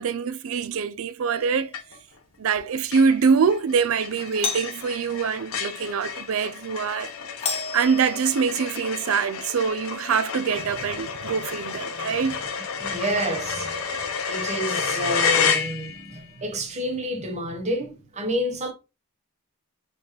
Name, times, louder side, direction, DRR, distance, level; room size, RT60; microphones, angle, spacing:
voice 1, 0.0-1.7 2.4-7.1 7.7-12.4, right 6 dB, 70° right, 0.4 m, -24 dB
Doorbell, 1.3-1.8 4.3-4.9 7.4-8.5, left 4 dB, 30° left, 0.7 m, -32 dB
sound 1, 1.7-2.2 2.5-2.6 2.9-16.2, left 6 dB, 70° left, 0.7 m, -30 dB
voice 2, 12.8-18.7, right 1 dB, 30° right, 0.8 m, -29 dB
4.1 x 3.2 x 2.9 m
head